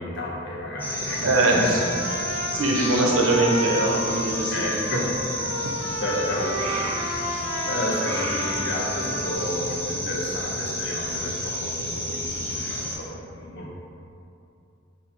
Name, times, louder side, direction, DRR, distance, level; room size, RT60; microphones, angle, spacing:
voice 1, 0.0-1.2 1.6-1.7 2.0-2.1 4.5-5.0 6.0-6.9 7.7-13.7, left 1 dB, 60° left, -4 dB, 0.6 m, -31 dB
sound 1, 0.8-13.0, left 1 dB, 10° left, 0.4 m, -31 dB
Trumpet, 1.0-9.5, equal, 40° right, 0.9 m, -32 dB
voice 2, 1.2-1.8 2.3-4.8, right 2 dB, 90° right, -1 dB, 0.6 m, -22 dB
2.7 x 2.6 x 4.3 m, 2.6 s
head